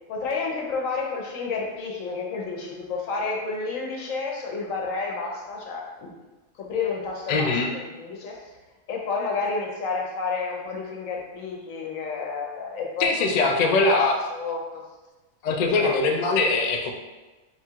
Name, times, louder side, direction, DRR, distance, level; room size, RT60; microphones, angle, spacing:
voice 1, 0.1-6.1 6.6-8.5 8.9-13.1 13.4-13.9 14.3-14.8 15.5-16.0, left 4 dB, 85° left, 0 dB, 1.2 m, -30 dB
voice 2, 7.3-7.7 13.0-14.2 15.4-16.9, left 3 dB, 65° left, 2 dB, 0.4 m, -22 dB
4.1 x 2.4 x 4.4 m, 1.2 s
omnidirectional pair, 1.3 m